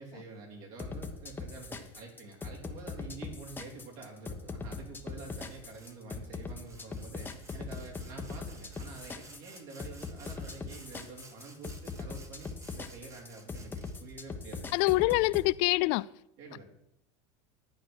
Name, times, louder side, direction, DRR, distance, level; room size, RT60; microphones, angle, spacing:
voice 1, 0.0-14.7 16.4-16.6, right 3 dB, 60° right, 4.0 m, -48 dB
sound 1, 0.8-15.5, left 4 dB, 10° left, 1.1 m, -40 dB
Sawing, 5.4-6.0 6.4-14.1, right 3 dB, 20° right, 1.5 m, -56 dB
voice 2, 14.7-16.1, left 22 dB, 60° left, 0.4 m, -25 dB
11.5 x 8.8 x 6.3 m
supercardioid pair, 135°, 16 cm